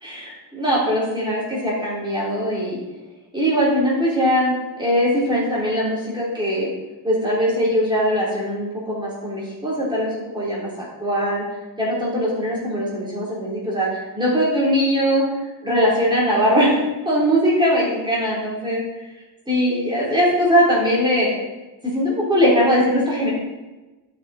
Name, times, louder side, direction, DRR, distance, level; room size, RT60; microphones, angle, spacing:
voice 1, 0.0-2.8 3.3-6.7 7.0-11.4 11.8-15.2 15.6-16.7 17.1-18.8 19.5-21.3 21.8-23.3, equal, 10° right, -6 dB, 3.6 m, -21 dB
11.5 x 6.6 x 4.3 m, 1.1 s
wide cardioid pair, 160°, 46 cm